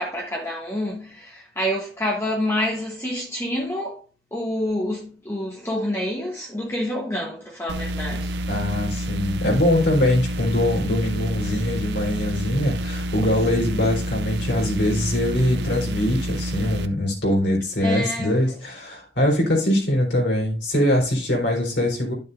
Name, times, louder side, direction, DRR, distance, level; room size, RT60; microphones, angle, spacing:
voice 1, 0.0-4.0 4.3-8.4 17.8-18.4, left 1 dB, 15° left, 1.2 m, -27 dB
sound 1, 7.7-16.9, equal, 75° right, 0.7 m, -28 dB
voice 2, 8.5-22.1, left 1 dB, 75° left, 3.8 m, -22 dB
11.5 x 6.6 x 2.6 m
head